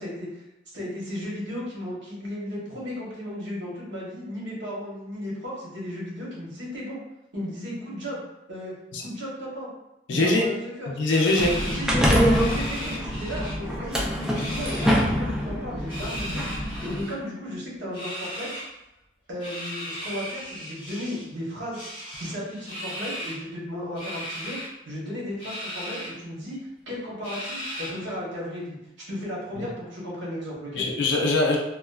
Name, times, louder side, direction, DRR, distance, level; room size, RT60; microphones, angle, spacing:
voice 1, 0.0-7.0 7.3-8.2 8.5-9.7 10.1-10.9 11.6-18.5 19.3-21.8 22.2-24.6 24.8-26.6 26.9-28.8 29.1-30.8, equal, 70° right, -5 dB, 1.0 m, -35 dB
voice 2, 10.1-10.5 10.9-11.6 29.6-29.7 30.7-31.6, left 2 dB, 70° left, 0 dB, 0.4 m, -22 dB
sound 1, 11.1-13.6 13.8-15.0 15.8-17.1 17.9-18.7 19.4-21.3 21.7-23.4 24.0-24.7 25.4-26.1 26.5-26.6 27.2-28.1, equal, 30° left, 0.8 m, -36 dB
sound 2, 11.4-17.0, equal, 5° right, 0.3 m, -25 dB
2.9 x 2.2 x 2.3 m, 0.92 s
head